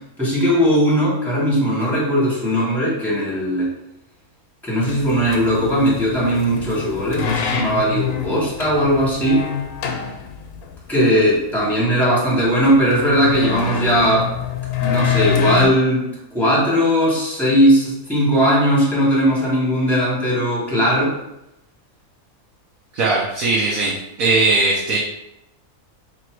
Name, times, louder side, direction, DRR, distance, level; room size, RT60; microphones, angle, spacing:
voice 1, 0.2-3.7 4.6-9.4 10.9-14.3 14.8-21.1, equal, ahead, -6 dB, 1.4 m, -18 dB
sound 1, 4.8-15.7, left 8 dB, 85° left, 1.1 m, -26 dB
voice 2, 22.9-25.0, right 3 dB, 75° right, -5 dB, 1.2 m, -19 dB
3.0 x 2.9 x 4.4 m, 0.84 s
omnidirectional pair, 1.5 m